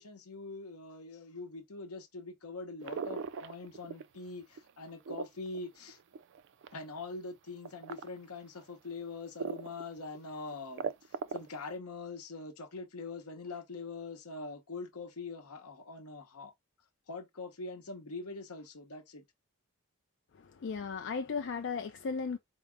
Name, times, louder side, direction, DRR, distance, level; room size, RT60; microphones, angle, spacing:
voice 1, 0.0-6.0 6.7-16.5 17.1-19.2, left 3 dB, 75° left, 0.9 m, -43 dB
sound 1, 2.8-4.2 4.6-6.8 7.6-8.1 8.6-8.7 9.4-9.8 10.1-10.2 10.5-11.6, right 5 dB, 55° right, 0.3 m, -38 dB
voice 2, 20.4-22.4, left 5 dB, 55° left, 0.4 m, -36 dB
4.6 x 2.1 x 3.5 m
head